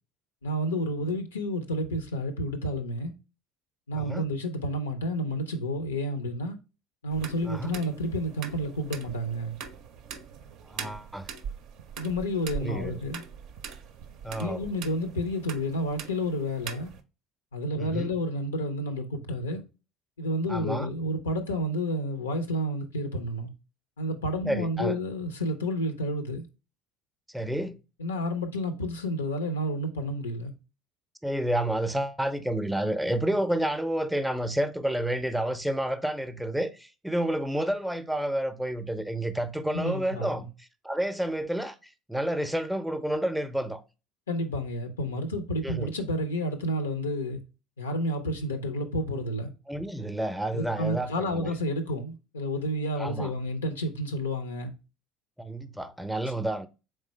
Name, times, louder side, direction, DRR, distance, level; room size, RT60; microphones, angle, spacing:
voice 1, 0.4-3.1 3.9-6.6 7.0-9.6 12.0-13.2 14.4-16.9 17.5-19.6 20.2-23.5 24.0-26.5 28.0-30.5 39.7-40.5 44.3-47.4 47.8-49.5 50.5-54.7, equal, 90° left, 0.5 m, -30 dB
sound 1, 7.1-17.0, right 7 dB, 60° right, 0.5 m, -42 dB
voice 2, 10.7-11.3 12.6-13.0 14.2-14.6 17.8-18.1 20.5-20.9 24.4-25.0 27.3-27.8 31.2-43.8 45.6-45.9 49.7-51.5 53.0-53.3 55.4-56.7, right 1 dB, 5° right, 0.5 m, -30 dB
3.7 x 3.2 x 3.0 m
hypercardioid pair, 65°, 0 cm